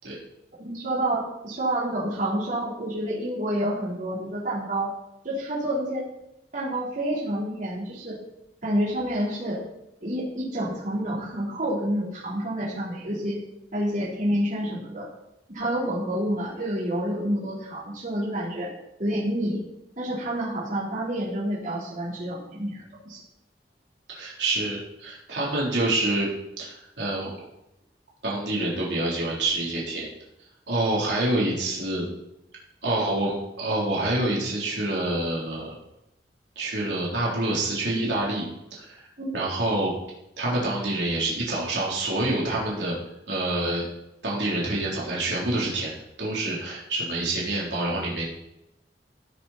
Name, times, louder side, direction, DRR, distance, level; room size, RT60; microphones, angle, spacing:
voice 1, 0.6-4.9 5.2-6.1 6.5-8.2 8.6-9.6 10.0-13.4 13.7-15.1 15.5-18.7 19.0-19.6 20.0-23.2 39.2-39.3, right 1 dB, 50° right, -6 dB, 3.8 m, -28 dB
voice 2, 24.1-26.3 26.6-27.3 28.2-30.1 30.7-32.1 32.8-35.7 36.6-38.4 38.7-39.1 39.3-39.9 40.4-43.0 43.3-43.8 44.2-48.3, right 2 dB, 85° right, -5 dB, 3.6 m, -27 dB
16.0 x 6.4 x 4.3 m, 0.87 s
head